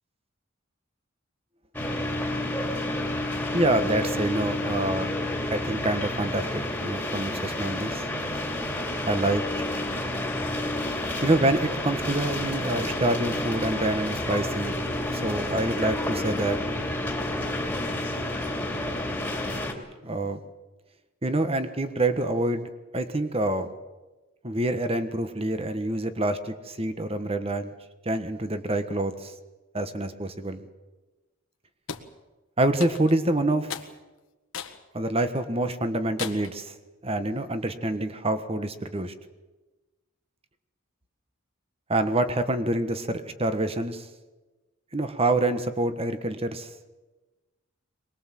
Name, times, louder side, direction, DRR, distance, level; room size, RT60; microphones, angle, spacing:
sound 1, 1.7-19.7, left 1 dB, 10° left, 2.6 m, -30 dB
voice 1, 3.5-5.2 5.5-8.0 9.1-9.7 11.2-14.8 15.1-16.6 20.0-20.4 21.2-23.7 24.4-27.7 28.0-29.3 29.7-30.7 32.6-33.7 34.9-36.7 37.0-39.1 41.9-44.1 44.9-46.7, right 1 dB, 30° right, 10 dB, 1.4 m, -26 dB
sound 2, 31.9-32.1 32.8-33.2 33.7-33.9 34.5-34.8 35.3-35.4 36.2-36.6, left 7 dB, 85° left, 1.7 m, -36 dB
23.5 x 20.5 x 7.7 m, 1.1 s
head